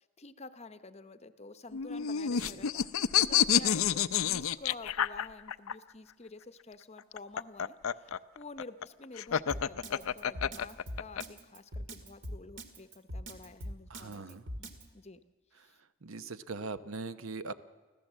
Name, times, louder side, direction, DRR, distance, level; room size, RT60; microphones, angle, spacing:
voice 1, 0.0-15.2 15.5-15.8, left 3 dB, 30° left, 12 dB, 0.8 m, -50 dB
sound 1, 1.7-5.7 7.0-11.2, left 9 dB, 85° left, 0.5 m, -29 dB
Drum kit, 9.5-14.8, equal, 60° right, 2.0 m, -41 dB
voice 2, 13.9-14.4 16.0-17.5, right 4 dB, 75° right, 13 dB, 0.9 m, -41 dB
25.0 x 16.0 x 7.4 m, 1.3 s
head